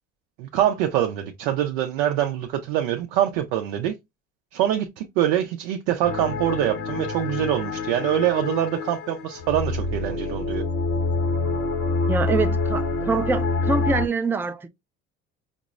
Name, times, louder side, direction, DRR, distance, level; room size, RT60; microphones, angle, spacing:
voice 1, 0.4-3.9 4.5-10.6, right 11 dB, 85° right, 0.5 m, -24 dB
sound 1, 6.0-14.1, left 3 dB, 50° left, 0.7 m, -26 dB
voice 2, 12.1-14.7, right 4 dB, 5° right, 0.4 m, -25 dB
5.1 x 2.0 x 2.4 m
supercardioid pair, 80°, 31 cm